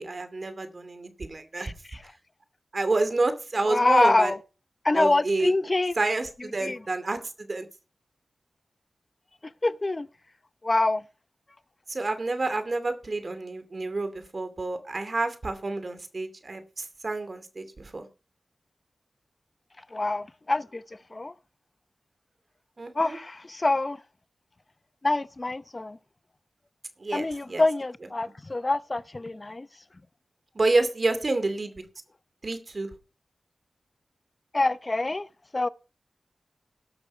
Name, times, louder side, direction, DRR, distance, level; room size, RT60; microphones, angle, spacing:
voice 1, 0.0-1.7 2.7-4.3 4.9-5.5 6.0-7.7 11.9-18.1 22.8-23.2 27.0-27.6 30.5-31.8 32.4-32.9, right 2 dB, 50° right, 2.4 m, -29 dB
voice 2, 3.7-4.4 4.8-6.0 6.6-6.8 9.6-10.1 10.6-11.0 19.9-20.8 21.1-21.3 22.9-24.0 25.0-26.0 27.1-29.7 34.5-35.3 35.5-35.7, left 2 dB, 35° left, 0.7 m, -25 dB
18.0 x 6.3 x 4.6 m
cardioid pair, 50°, 0 cm